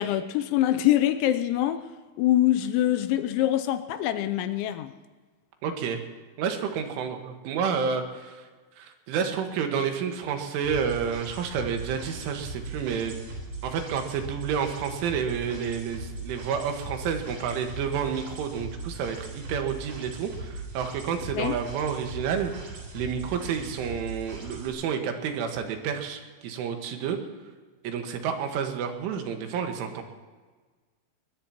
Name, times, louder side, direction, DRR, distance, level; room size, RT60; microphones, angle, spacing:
voice 1, 0.0-1.8 2.2-4.9 21.3-21.6, left 13 dB, 80° left, 11 dB, 2.9 m, -24 dB
voice 2, 5.6-6.0 6.4-8.5 8.8-13.2 13.6-27.2 27.8-30.0, right 7 dB, 80° right, 4 dB, 4.0 m, -30 dB
sound 1, 10.6-24.7, right 2 dB, 45° right, 4.8 m, -39 dB
21.5 x 21.0 x 3.0 m, 1.4 s
omnidirectional pair, 5.6 m